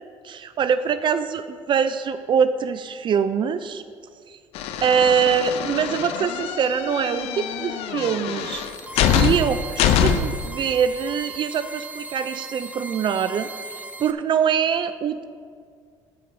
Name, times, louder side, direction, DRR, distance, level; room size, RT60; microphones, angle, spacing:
voice 1, 0.2-3.8 4.3-4.4 4.8-8.6 9.1-15.2, right 7 dB, 50° right, 11 dB, 0.5 m, -23 dB
sound 1, 4.5-10.5, left 8 dB, 75° left, 0.6 m, -24 dB
sound 2, 8.4-14.1, right 2 dB, 15° right, 0.7 m, -37 dB
13.0 x 4.6 x 6.8 m, 2.1 s
supercardioid pair, 75°, 10 cm